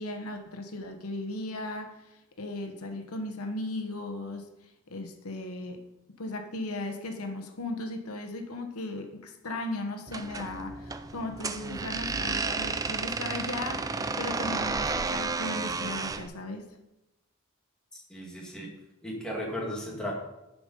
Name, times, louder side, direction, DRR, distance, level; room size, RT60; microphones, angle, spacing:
voice 1, 0.0-4.5 4.9-5.9 6.2-16.7, left 2 dB, 85° left, 5 dB, 1.1 m, -37 dB
sound 1, 10.1-16.3, right 4 dB, 15° right, 0.3 m, -32 dB
voice 2, 17.9-18.8 19.0-20.1, equal, 5° left, -3 dB, 1.8 m, -36 dB
10.5 x 5.2 x 5.3 m, 0.98 s
head